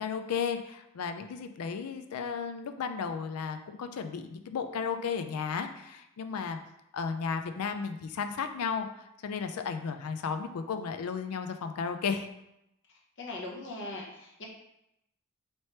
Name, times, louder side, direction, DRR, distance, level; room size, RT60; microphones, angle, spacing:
voice 1, 0.0-6.6 6.9-8.9 9.2-12.3, left 6 dB, 90° left, 7 dB, 0.4 m, -34 dB
voice 2, 13.2-14.5, left 2 dB, 55° left, -1 dB, 0.8 m, -40 dB
3.2 x 2.9 x 4.3 m, 0.83 s
head